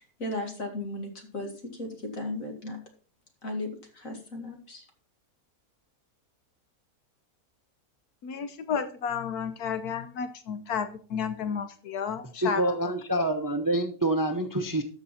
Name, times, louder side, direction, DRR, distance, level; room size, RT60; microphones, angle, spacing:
voice 1, 0.0-1.5 1.8-2.8 3.4-3.7 3.9-4.8, left 1 dB, 60° left, 4 dB, 2.5 m, -35 dB
voice 2, 8.2-12.8, left 7 dB, 80° left, 10 dB, 1.3 m, -32 dB
voice 3, 12.4-14.8, right 1 dB, 20° right, 6 dB, 0.7 m, -27 dB
13.0 x 6.1 x 4.3 m, 0.41 s
omnidirectional pair, 1.6 m